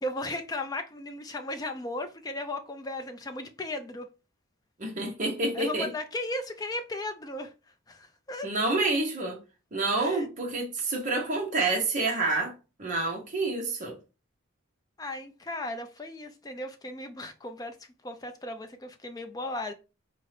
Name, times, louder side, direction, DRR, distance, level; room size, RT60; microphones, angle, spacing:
voice 1, 0.0-4.1 5.5-7.5 7.9-8.8 10.0-10.3 15.0-19.7, left 1 dB, 20° left, 0.4 m, -36 dB
voice 2, 4.8-5.9 8.4-9.4 9.7-12.5 12.8-13.9, right 2 dB, 35° right, 0.9 m, -28 dB
4.1 x 2.6 x 3.2 m
head